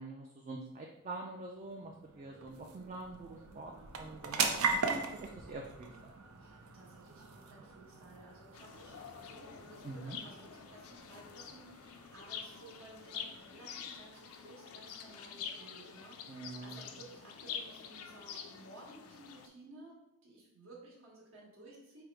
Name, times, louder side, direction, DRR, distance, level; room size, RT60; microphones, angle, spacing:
voice 1, 0.0-3.7 4.0-5.9 9.8-10.2 16.3-16.8, right 3 dB, 35° right, 0 dB, 0.3 m, -45 dB
sound 1, 0.9-15.8, right 4 dB, 85° right, 0.5 m, -41 dB
voice 2, 6.4-22.0, right 2 dB, 65° right, -3 dB, 1.3 m, -56 dB
sound 2, 8.5-19.5, left 7 dB, 75° left, 0.4 m, -47 dB
4.6 x 2.0 x 4.6 m, 0.89 s
head